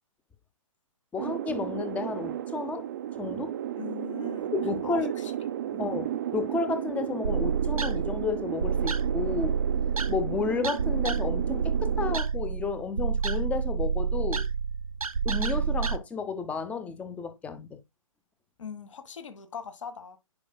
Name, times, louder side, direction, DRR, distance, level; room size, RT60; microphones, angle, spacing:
voice 1, 1.1-2.9 3.2-3.5 4.5-5.1 5.8-9.6 10.1-14.5 15.2-17.8, left 5 dB, 10° left, 0.6 m, -32 dB
sound 1, 1.2-12.2, right 11 dB, 35° right, 0.4 m, -34 dB
voice 2, 3.8-4.5 4.8-5.3 5.7-6.0 18.6-20.2, left 6 dB, 60° left, 1.5 m, -41 dB
sound 2, 7.2-16.0, right 6 dB, 85° right, 0.7 m, -29 dB
9.6 x 4.9 x 2.2 m
figure-of-eight pair, 135°, 18 cm